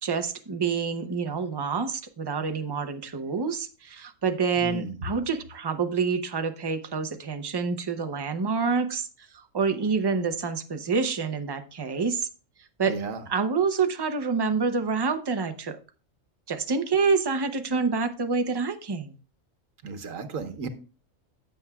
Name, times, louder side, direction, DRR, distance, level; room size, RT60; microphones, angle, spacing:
voice 1, 0.0-12.3 12.8-12.9 13.3-15.8 16.5-19.2, right 5 dB, 25° right, 0.6 m, -27 dB
voice 2, 4.6-5.0 12.9-13.2 19.8-20.7, right 4 dB, 80° right, 1.4 m, -34 dB
15.5 x 7.1 x 2.3 m
omnidirectional pair, 1.3 m